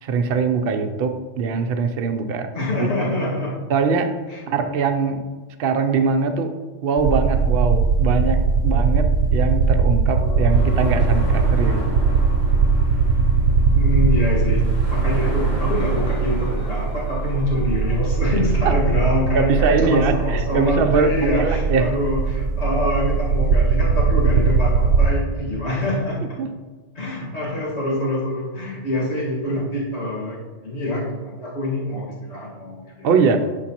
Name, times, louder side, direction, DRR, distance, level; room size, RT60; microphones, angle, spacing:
voice 1, 0.0-2.5 2.8-2.9 3.7-4.2 4.5-5.3 5.6-6.6 6.8-11.8 18.6-18.8 19.3-21.9 26.4-26.5 33.0-33.5, right 5 dB, 60° right, 7 dB, 0.8 m, -22 dB
voice 2, 2.5-3.6 4.3-4.4 13.7-14.6 14.9-26.4 27.0-33.1, left 1 dB, 60° left, -5 dB, 2.1 m, -25 dB
sound 1, 7.0-25.1, right 5 dB, 85° right, 0.9 m, -19 dB
sound 2, 10.2-19.2, right 4 dB, 45° left, 1.7 m, -39 dB
sound 3, 10.5-17.1, equal, 85° left, 2.9 m, -35 dB
10.0 x 5.2 x 2.9 m, 1.3 s
omnidirectional pair, 1.3 m